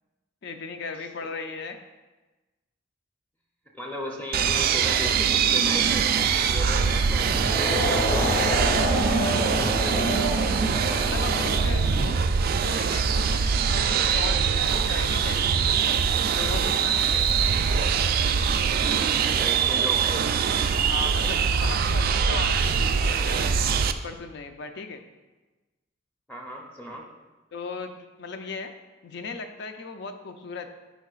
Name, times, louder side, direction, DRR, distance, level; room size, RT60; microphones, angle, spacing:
voice 1, 0.4-1.8 7.5-7.6 11.0-12.2 12.6-16.0 16.3-17.3 20.9-23.7 24.0-25.0 27.5-28.7 29.0-30.7, left 4 dB, 60° left, 7 dB, 0.5 m, -37 dB
voice 2, 0.9-1.3 3.7-7.3 7.6-8.8 19.2-20.4 26.3-27.1, equal, 10° left, -1 dB, 0.6 m, -37 dB
sound 1, 4.3-23.9, right 6 dB, 50° right, 0.3 m, -23 dB
Crowd, 7.1-12.3, equal, 35° left, 1.0 m, -28 dB
10.0 x 4.6 x 2.4 m, 1.2 s
head